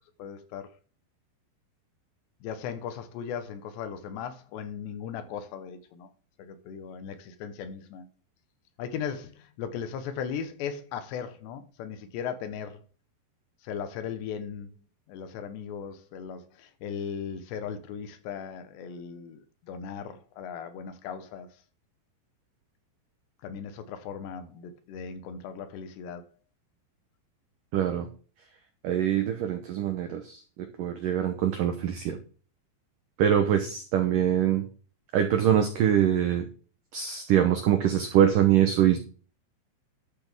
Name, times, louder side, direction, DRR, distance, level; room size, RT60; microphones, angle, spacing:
voice 1, 0.2-0.7 2.4-6.1 6.4-8.1 8.8-12.8 13.6-14.7 15.1-21.5 23.4-26.3, left 7 dB, 75° left, 3.1 m, -37 dB
voice 2, 27.7-28.1 28.8-32.2 33.2-34.7 35.1-36.5 36.9-39.0, right 10 dB, 85° right, 1.9 m, -24 dB
12.5 x 8.0 x 3.6 m
omnidirectional pair, 5.3 m